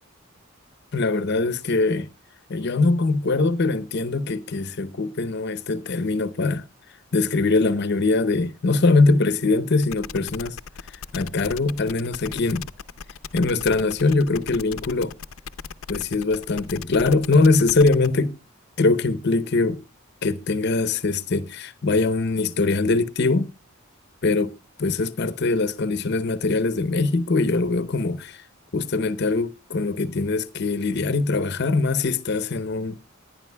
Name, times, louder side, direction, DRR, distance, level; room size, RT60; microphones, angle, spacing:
voice 1, 0.9-2.1 2.5-6.6 7.1-10.6 11.1-12.7 13.3-15.2 15.9-18.4 18.8-19.8 20.2-23.5 24.2-24.5 24.8-28.4 28.7-33.0, left 3 dB, 55° left, 0.7 m, -22 dB
sound 1, 9.8-18.1, left 6 dB, 90° left, 0.6 m, -37 dB
20.5 x 10.0 x 2.2 m
head